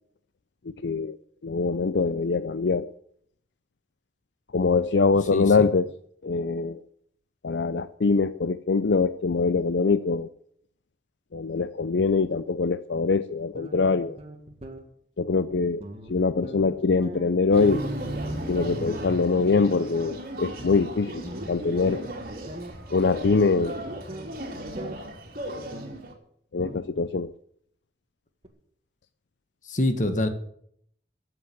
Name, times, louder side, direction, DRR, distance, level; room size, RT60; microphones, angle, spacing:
voice 1, 0.7-1.2 1.4-2.9 4.5-5.9 6.2-6.8 7.4-10.3 11.3-14.2 15.2-17.9 18.5-22.1 22.9-23.8 26.5-27.3, left 4 dB, 75° left, 13 dB, 0.5 m, -23 dB
voice 2, 5.3-5.7 29.7-30.3, left 1 dB, 45° left, 8 dB, 1.8 m, -25 dB
sound 1, 13.5-14.8 15.5-15.6 15.8-16.1 16.4-17.3 18.2-19.2 19.4-19.6 20.6-22.1 22.5-22.7 24.1-24.3 24.8-25.0 25.7-26.0 26.6-26.9 27.2-27.3 28.4-28.5, right 1 dB, 35° right, 2.0 m, -40 dB
sound 2, 17.5-26.1, right 1 dB, 50° right, 3.2 m, -35 dB
14.0 x 8.0 x 9.5 m, 0.66 s
head